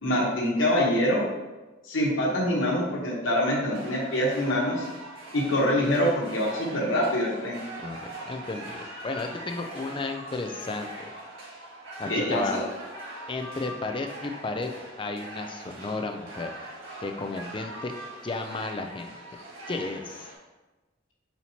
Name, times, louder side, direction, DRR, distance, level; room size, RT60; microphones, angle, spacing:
voice 1, 0.0-1.3 1.8-4.8 5.3-7.6 12.1-12.6, left 1 dB, 80° left, -2 dB, 1.1 m, -25 dB
sound 1, 3.7-20.3, right 1 dB, 85° right, 1.5 m, -42 dB
voice 2, 7.8-11.1 12.0-12.6 13.3-14.7 15.0-16.5 17.0-17.9 18.2-19.2 19.7-20.3, left 3 dB, 25° left, 6 dB, 0.3 m, -33 dB
4.3 x 4.2 x 2.8 m, 1.1 s
head